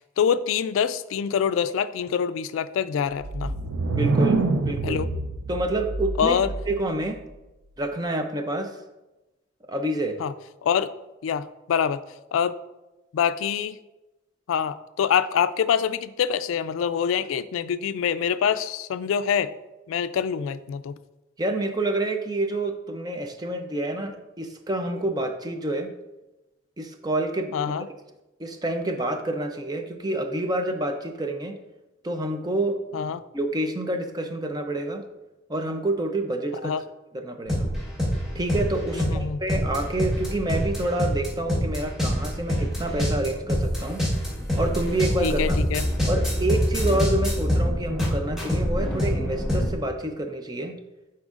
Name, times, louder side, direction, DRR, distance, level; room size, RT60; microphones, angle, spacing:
voice 1, 0.0-3.5 4.8-5.1 6.2-6.5 10.2-10.3 10.6-10.9 11.2-12.0 12.3-12.6 13.1-13.8 14.5-19.5 19.9-20.9 27.5-27.9 32.9-33.2 36.6-36.8 38.9-39.4 45.2-45.8, left 7 dB, 85° left, 13 dB, 0.3 m, -25 dB
sound 1, 3.1-6.9, right 3 dB, 85° right, 0.5 m, -26 dB
voice 2, 3.9-5.0 5.5-6.4 6.7-7.2 7.8-8.7 9.7-10.2 21.4-25.9 26.8-27.7 28.4-31.6 32.0-33.1 33.3-35.0 35.5-36.7 37.1-37.7 38.3-44.0 44.6-45.6 46.1-50.8, right 2 dB, 20° right, 6 dB, 0.5 m, -28 dB
sound 2, 37.5-49.7, equal, ahead, 1.3 m, -25 dB
10.0 x 4.3 x 2.4 m, 1.0 s
head